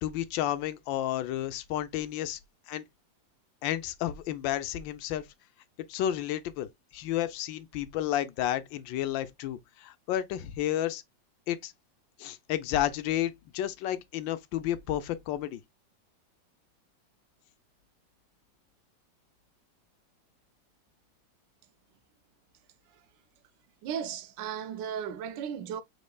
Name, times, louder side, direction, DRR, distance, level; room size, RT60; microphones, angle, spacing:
voice 1, 0.0-2.4 2.7-2.8 3.6-5.2 5.9-11.0 11.5-11.7 12.2-15.6, left 12 dB, 85° left, 1.3 m, -31 dB
voice 2, 23.8-25.8, right 8 dB, 80° right, 1.3 m, -35 dB
5.2 x 3.7 x 2.2 m
omnidirectional pair, 2.0 m